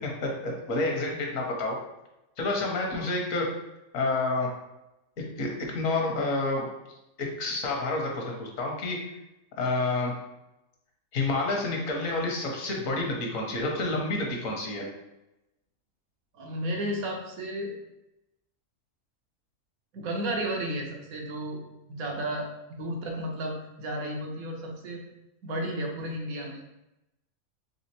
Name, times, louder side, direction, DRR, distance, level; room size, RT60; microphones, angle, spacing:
voice 1, 0.0-1.8 2.4-3.4 3.9-4.5 5.4-6.7 7.4-9.0 9.6-10.1 11.1-14.9, left 2 dB, 75° left, 0 dB, 1.3 m, -29 dB
voice 2, 16.3-17.7 19.9-21.6 21.9-25.0 25.4-26.6, right 1 dB, 85° right, 0 dB, 1.3 m, -33 dB
4.2 x 3.4 x 2.9 m, 0.92 s
omnidirectional pair, 1.4 m